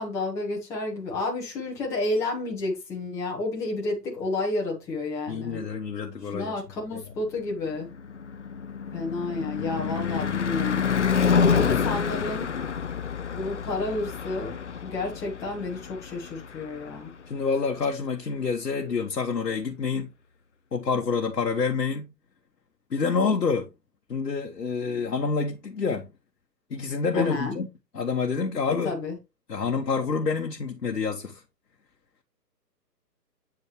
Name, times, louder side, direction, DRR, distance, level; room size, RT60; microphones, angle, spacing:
voice 1, 0.0-5.6 6.3-7.9 8.9-10.8 11.4-12.5 13.3-17.1 27.1-27.5 28.8-29.2, left 2 dB, 5° left, 1.0 m, -30 dB
voice 2, 5.3-6.5 6.9-7.0 9.6-10.4 11.5-11.8 12.6-12.8 17.3-20.1 20.7-22.1 22.9-23.7 24.1-26.1 26.7-27.7 27.9-28.9 29.5-31.4, left 5 dB, 70° left, 1.1 m, -28 dB
Car passing by / Truck / Engine, 7.2-17.5, left 6 dB, 45° left, 0.5 m, -28 dB
8.1 x 5.3 x 3.0 m
figure-of-eight pair, 135°, 50 cm